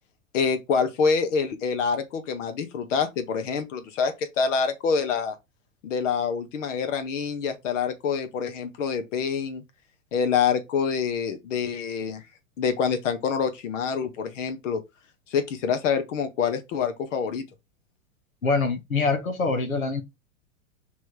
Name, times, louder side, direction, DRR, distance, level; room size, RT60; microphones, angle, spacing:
voice 1, 0.3-5.4 5.8-9.6 10.1-12.2 12.6-14.8 15.3-17.4, left 6 dB, 60° left, 1.6 m, -26 dB
voice 2, 18.4-20.0, left 4 dB, 85° left, 1.6 m, -24 dB
6.1 x 3.9 x 4.8 m
hypercardioid pair, 100°, 41 cm